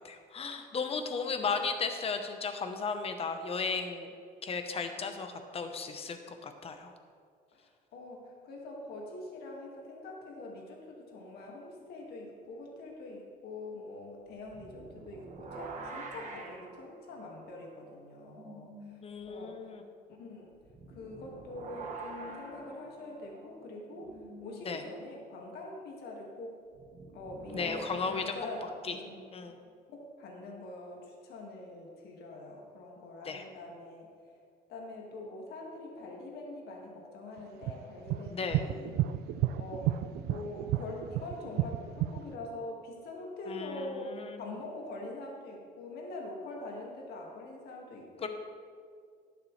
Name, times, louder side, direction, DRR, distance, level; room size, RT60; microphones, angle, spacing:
voice 1, 0.0-4.1 4.4-6.9 19.0-19.8 24.6-24.8 27.5-28.3 28.8-29.0 29.3-29.6 33.2-33.4 38.3-38.7 43.5-44.4 48.2-48.3, left 5 dB, 35° left, 6 dB, 1.0 m, -35 dB
voice 2, 7.5-18.9 19.3-19.6 20.2-20.5 20.9-24.2 24.4-26.6 27.1-29.2 29.9-34.1 34.7-39.0 39.6-44.1 44.4-48.3, left 2 dB, 70° left, -1 dB, 2.0 m, -44 dB
sound 1, 14.4-18.9 19.2-19.3 20.6-24.6 26.7-29.6, right 3 dB, 45° right, 1.6 m, -47 dB
sound 2, 37.6-42.3, right 13 dB, 75° right, 0.4 m, -31 dB
11.5 x 10.0 x 3.3 m, 2.1 s
cardioid pair, 110°, 17 cm